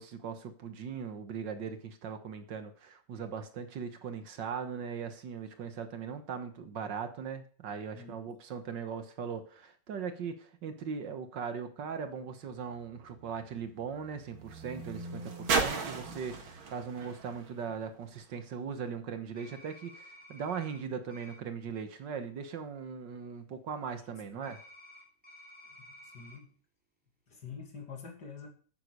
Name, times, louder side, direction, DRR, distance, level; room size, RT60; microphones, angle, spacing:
voice 1, 0.0-24.6, right 6 dB, 65° right, 9 dB, 1.8 m, -39 dB
sound 1, 12.0-18.5 19.3-19.4, right 4 dB, 85° right, 2.6 m, -37 dB
sound 2, 19.4-20.8 21.1-21.4 24.4-26.4, left 1 dB, 5° right, 2.9 m, -53 dB
voice 2, 24.0-24.4 25.8-26.5 27.3-28.5, left 5 dB, 60° left, 2 dB, 2.9 m, -47 dB
9.4 x 9.3 x 6.6 m, 0.44 s
omnidirectional pair, 2.1 m